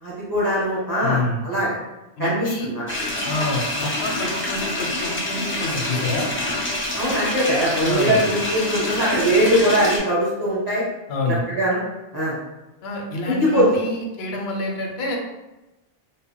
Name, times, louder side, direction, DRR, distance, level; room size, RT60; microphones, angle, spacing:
voice 1, 0.0-1.8 2.2-2.9 6.9-10.8 11.5-11.8 12.1-12.4 13.3-13.7, equal, 25° right, -8 dB, 0.7 m, -21 dB
voice 2, 1.0-1.5 2.2-2.7 3.2-6.3 7.8-8.2 11.1-11.4 12.8-15.2, left 2 dB, 85° left, 0 dB, 0.8 m, -27 dB
sound 1, 2.9-10.0, left 1 dB, 20° left, 0.4 m, -26 dB
2.1 x 2.1 x 3.6 m, 1.0 s
omnidirectional pair, 1.0 m